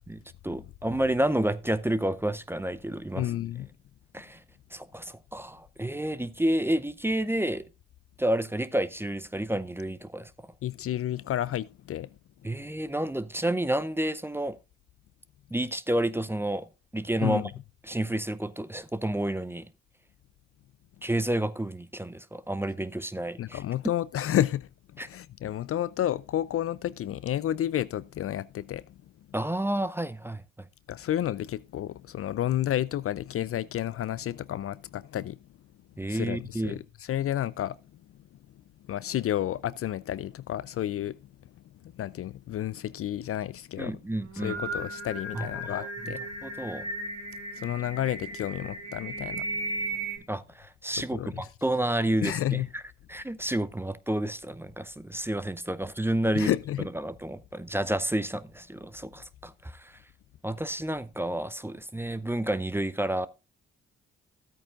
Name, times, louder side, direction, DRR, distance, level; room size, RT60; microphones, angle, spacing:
voice 1, 0.0-3.3 4.1-4.4 4.7-7.6 8.2-10.3 12.4-14.6 15.5-16.7 16.9-17.4 17.9-19.7 21.0-23.6 25.0-25.1 29.3-30.4 36.0-36.8 43.8-44.6 45.3-46.1 46.4-46.9 50.3-52.8 53.1-56.5 57.0-60.0 60.4-63.3, right 1 dB, 10° right, 0.6 m, -30 dB
voice 2, 3.2-3.7 10.6-12.1 17.2-17.5 23.4-29.0 30.9-35.4 36.1-37.8 38.9-41.2 41.9-44.0 44.3-46.2 47.5-49.6 50.9-51.5 52.2-52.7 56.3-56.9, left 12 dB, 45° left, 0.4 m, -31 dB
Singing, 44.2-50.2, right 2 dB, 55° right, 4.6 m, -36 dB
13.0 x 8.7 x 2.4 m
hypercardioid pair, 50°, 31 cm